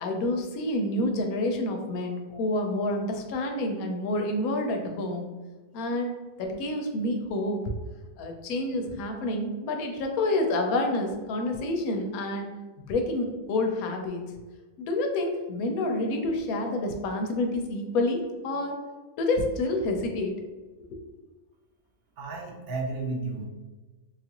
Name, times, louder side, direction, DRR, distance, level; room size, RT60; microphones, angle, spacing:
voice 1, 0.0-5.3 5.7-6.1 6.4-7.6 8.2-12.5 12.8-14.2 14.8-18.8 19.2-20.4 20.9-21.0, left 2 dB, 85° left, 3 dB, 1.1 m, -28 dB
voice 2, 22.2-23.5, right 3 dB, 60° right, 1 dB, 0.7 m, -32 dB
3.5 x 2.4 x 2.8 m, 1.2 s
omnidirectional pair, 1.5 m